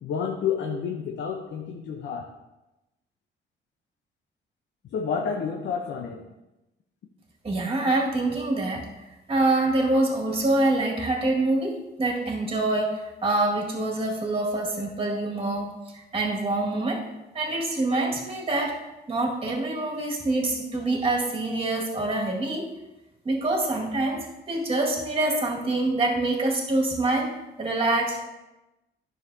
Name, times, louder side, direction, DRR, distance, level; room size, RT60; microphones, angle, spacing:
voice 1, 0.0-2.3 4.8-6.2, left 6 dB, 65° left, 2 dB, 0.8 m, -30 dB
voice 2, 7.4-8.9 9.3-17.1 17.3-18.8 19.1-22.7 23.2-27.3 27.6-28.2, right 2 dB, 30° right, -1 dB, 2.0 m, -25 dB
10.0 x 6.6 x 2.8 m, 0.98 s
cardioid pair, 90°, 20 cm